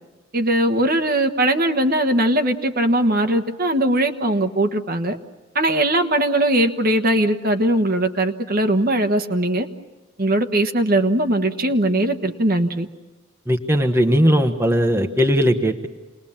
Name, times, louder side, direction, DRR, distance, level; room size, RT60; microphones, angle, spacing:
voice 1, 0.3-5.2 5.5-9.7 10.2-12.9, right 1 dB, 45° right, 7 dB, 1.3 m, -20 dB
voice 2, 13.5-15.9, equal, 10° right, 4 dB, 1.2 m, -18 dB
28.5 x 20.5 x 7.3 m, 1.2 s
head